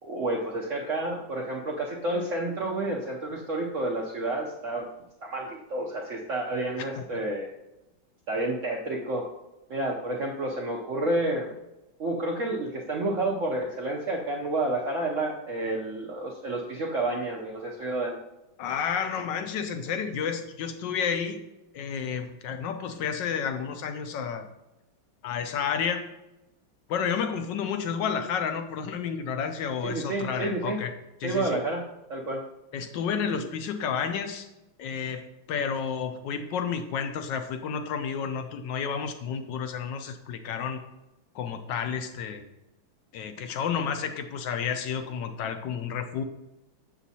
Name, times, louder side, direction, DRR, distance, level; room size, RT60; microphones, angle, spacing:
voice 1, 0.0-4.9 5.2-7.5 8.3-9.3 9.7-11.5 12.0-18.2 29.8-30.8 31.2-31.8 32.1-32.4, right 2 dB, 60° right, -2 dB, 0.8 m, -30 dB
voice 2, 18.6-21.4 21.7-24.5 25.2-26.1 26.9-30.9 31.2-31.6 32.7-34.5 34.8-35.2 35.5-40.8 41.3-42.4 43.1-46.2, left 7 dB, 75° left, 7 dB, 1.2 m, -31 dB
7.1 x 7.0 x 2.8 m, 0.95 s
omnidirectional pair, 2.1 m